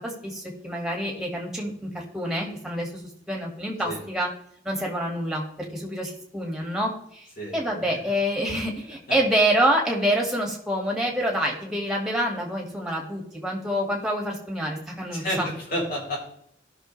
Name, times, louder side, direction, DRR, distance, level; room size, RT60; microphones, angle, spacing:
voice 1, 0.0-4.3 4.6-5.5 5.7-7.3 7.5-15.5, right 1 dB, 5° right, -1 dB, 2.0 m, -27 dB
voice 2, 15.1-16.2, equal, 50° left, -4 dB, 4.4 m, -30 dB
16.5 x 6.3 x 3.3 m, 0.67 s
head